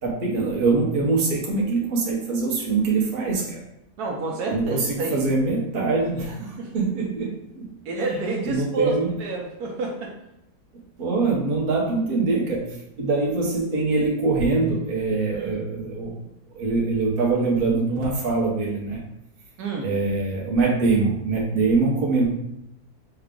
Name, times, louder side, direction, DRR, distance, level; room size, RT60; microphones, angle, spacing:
voice 1, 0.0-3.6 4.5-7.7 8.0-8.2 8.4-9.1 11.0-16.1 16.5-19.0 19.8-22.3, right 3 dB, 40° right, -2 dB, 1.0 m, -23 dB
voice 2, 4.0-5.3 6.4-6.7 7.8-10.1 15.3-15.6 19.6-19.9, right 3 dB, 70° right, 0 dB, 1.2 m, -29 dB
5.7 x 2.4 x 3.6 m, 0.83 s
omnidirectional pair, 1.7 m